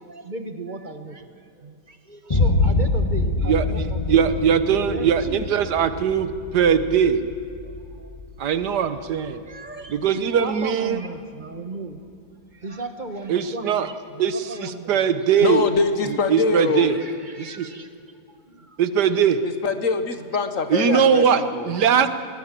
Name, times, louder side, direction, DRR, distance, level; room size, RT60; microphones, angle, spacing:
voice 1, 0.0-4.2 4.8-5.5 7.6-8.2 8.9-9.0 9.4-12.0 12.5-15.2 15.9-16.1 16.9-17.9 18.3-18.8 21.7-22.1, right 3 dB, 30° right, 8 dB, 1.2 m, -36 dB
Boom, 2.3-10.1, left 2 dB, 20° left, 1.4 m, -26 dB
voice 2, 3.5-7.2 8.4-9.4 9.9-11.0 13.3-13.9 14.2-14.4 14.6-15.6 16.3-17.0 17.4-17.7 18.8-19.4 20.7-21.4 21.7-22.1, right 7 dB, 75° right, 12 dB, 1.6 m, -20 dB
voice 3, 15.4-16.9 19.4-21.8, left 4 dB, 55° left, 9 dB, 1.5 m, -24 dB
21.0 x 18.0 x 7.5 m, 2.5 s
omnidirectional pair, 1.8 m